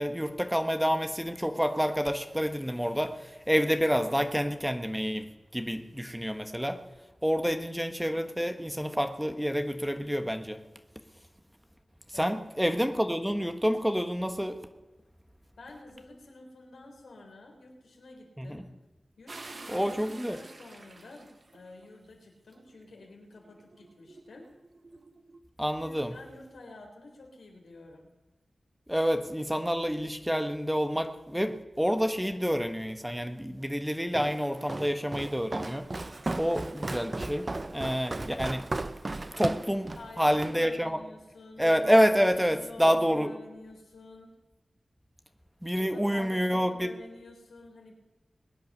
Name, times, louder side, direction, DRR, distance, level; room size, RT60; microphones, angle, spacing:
voice 1, 0.0-5.3 5.5-6.8 7.2-10.6 12.1-14.6 18.4-18.6 19.7-20.4 25.6-26.1 28.9-35.9 36.4-38.7 39.4-41.0 41.6-43.3 45.6-46.9, equal, 5° right, 7 dB, 1.4 m, -28 dB
voice 2, 15.6-18.7 19.2-24.5 25.8-28.1 40.0-41.7 42.1-44.3 45.8-47.9, left 2 dB, 90° left, 1 dB, 3.7 m, -49 dB
sound 1, 19.3-21.9 22.5-25.4, right 3 dB, 60° right, 1.4 m, -50 dB
Walk footsteps, 34.1-40.6, right 2 dB, 40° right, 0.7 m, -36 dB
21.5 x 9.1 x 6.7 m, 1.1 s
cardioid pair, 45°, 0 cm